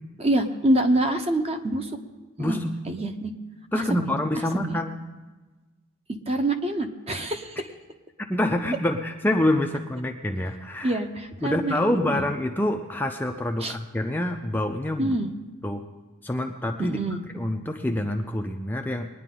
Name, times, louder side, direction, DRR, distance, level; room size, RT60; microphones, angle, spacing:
voice 1, 0.2-1.9 2.4-2.6 2.9-3.3 3.7-4.2 4.5-4.8 6.3-7.7 10.8-12.3 13.6-13.8 15.0-15.3 16.8-17.2, right 1 dB, 30° right, 6 dB, 0.9 m, -26 dB
voice 2, 2.4-2.7 3.7-4.9 8.3-11.0 11.4-15.2 15.6-15.8 16.2-17.0 17.3-19.1, left 1 dB, 10° left, 3 dB, 0.5 m, -26 dB
21.0 x 10.0 x 3.8 m, 1.2 s
head